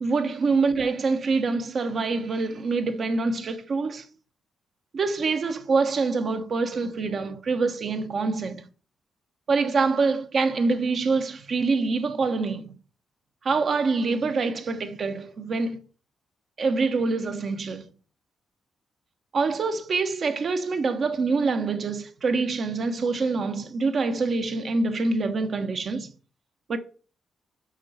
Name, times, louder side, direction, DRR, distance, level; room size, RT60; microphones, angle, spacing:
voice 1, 0.0-4.0 4.9-8.6 9.5-12.8 13.4-15.8 16.6-17.9 19.3-26.1 26.7-26.8, right 4 dB, 55° right, 1.0 m, -25 dB
6.1 x 4.6 x 5.6 m
cardioid pair, 70°, 0 cm